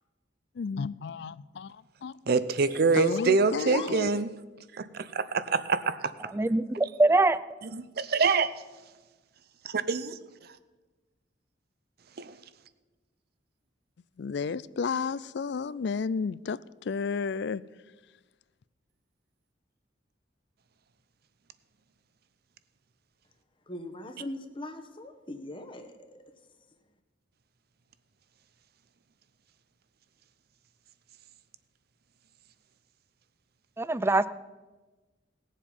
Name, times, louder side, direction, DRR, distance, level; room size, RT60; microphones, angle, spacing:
voice 1, 0.6-2.1 2.9-4.1 14.2-17.6, left 5 dB, 65° left, 0.4 m, -32 dB
voice 2, 2.3-4.3 4.7-6.0 7.7-8.5 9.6-10.2 12.2-12.4, right 4 dB, 55° right, 0.7 m, -26 dB
voice 3, 6.3-7.4 33.8-34.3, right 2 dB, 15° right, 0.4 m, -23 dB
voice 4, 23.7-26.2, left 2 dB, 30° left, 1.2 m, -40 dB
18.5 x 7.4 x 5.4 m
head